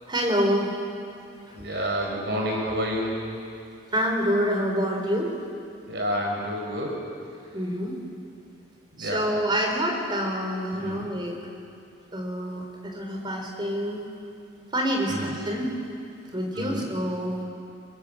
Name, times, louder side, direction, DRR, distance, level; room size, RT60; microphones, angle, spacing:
voice 1, 0.1-0.7 1.5-1.6 3.9-5.4 7.5-8.0 9.0-11.4 12.1-14.1 14.7-15.7 16.3-17.4, equal, 25° right, 1 dB, 3.6 m, -27 dB
voice 2, 1.5-3.3 5.9-7.2 9.0-9.3 10.8-11.1 15.1-15.3 16.5-16.9, equal, 60° right, -1 dB, 5.5 m, -29 dB
25.0 x 21.0 x 7.8 m, 2.4 s
head